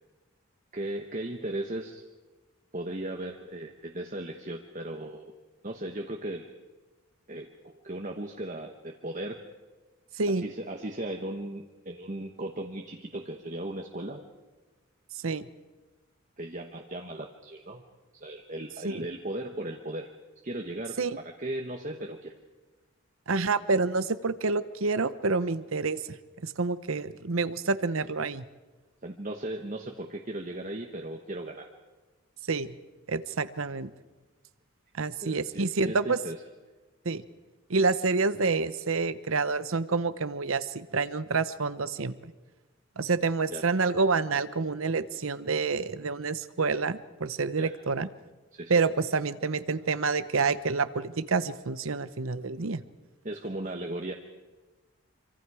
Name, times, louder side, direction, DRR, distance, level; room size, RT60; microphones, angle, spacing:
voice 1, 0.7-2.0 2.7-5.3 5.6-6.5 7.3-9.4 10.3-14.3 16.4-17.8 18.2-20.1 20.4-22.3 29.0-31.7 35.2-36.4 43.5-43.6 47.6-47.7 48.5-48.7 53.2-54.1, right 1 dB, 35° right, 2 dB, 1.2 m, -37 dB
voice 2, 23.3-26.0 26.4-28.4 32.5-32.7 33.1-33.9 34.9-36.2 37.0-37.2 37.7-42.3 43.0-48.1 48.7-52.8, right 4 dB, 75° right, 14 dB, 0.9 m, -28 dB
26.5 x 25.0 x 4.9 m, 1.3 s
head